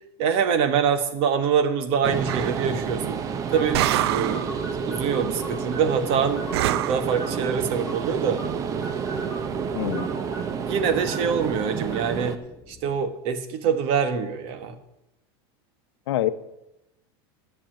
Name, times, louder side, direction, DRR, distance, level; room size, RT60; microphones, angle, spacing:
voice 1, 0.2-3.2 3.5-3.8 4.1-4.5 4.9-8.4 9.7-9.9 10.7-12.4 12.7-14.7, right 7 dB, 45° right, 9 dB, 1.2 m, -25 dB
sound 1, 2.0-12.4, right 6 dB, 25° right, 0.7 m, -29 dB
sound 2, 2.3-2.6 3.7-4.5 6.5-7.1, right 14 dB, 80° right, 0.5 m, -25 dB
sound 3, 3.5-13.0, equal, 20° left, 3.0 m, -42 dB
voice 2, 9.7-10.1 16.1-16.3, left 14 dB, 85° left, 12 dB, 0.8 m, -25 dB
10.5 x 6.7 x 8.9 m, 0.89 s
supercardioid pair, 155°, 13 cm